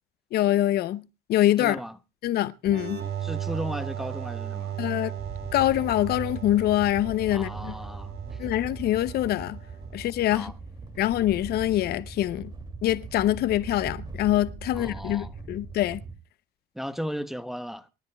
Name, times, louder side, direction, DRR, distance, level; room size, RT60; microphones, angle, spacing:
voice 1, 0.3-1.8 2.2-3.0 4.8-5.1 5.5-7.7 8.4-9.6 9.9-10.5 11.0-12.5 12.8-16.0, left 13 dB, 70° left, 0.7 m, -24 dB
voice 2, 1.6-2.0 3.2-4.8 7.3-8.4 10.3-10.5 14.7-15.3 16.7-17.9, equal, ahead, 0.8 m, -35 dB
sound 1, 2.7-10.1, right 10 dB, 70° right, 2.4 m, -36 dB
sound 2, 5.2-16.1, right 4 dB, 25° right, 2.5 m, -40 dB
24.0 x 13.0 x 2.3 m
cardioid pair, 110°, 17 cm